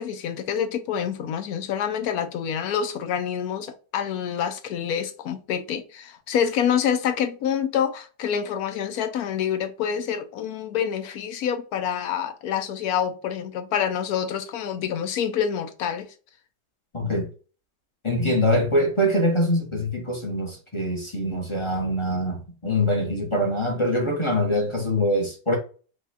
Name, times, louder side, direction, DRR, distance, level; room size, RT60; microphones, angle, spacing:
voice 1, 0.0-16.1, left 8 dB, 70° left, 0.9 m, -27 dB
voice 2, 16.9-17.3 18.0-25.6, left 1 dB, 25° left, 0.6 m, -24 dB
4.9 x 2.3 x 4.0 m
omnidirectional pair, 1.9 m